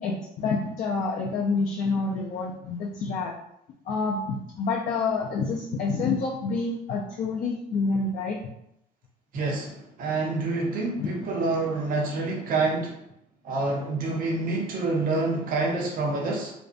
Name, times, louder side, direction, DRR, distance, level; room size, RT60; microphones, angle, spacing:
voice 1, 0.0-3.3 3.9-8.4 11.0-11.1, left 4 dB, 55° left, -3 dB, 0.4 m, -28 dB
voice 2, 9.3-13.0 13.4-16.5, right 3 dB, 55° right, -1 dB, 0.6 m, -27 dB
2.5 x 2.1 x 2.5 m, 0.75 s
cardioid pair, 110°, 17 cm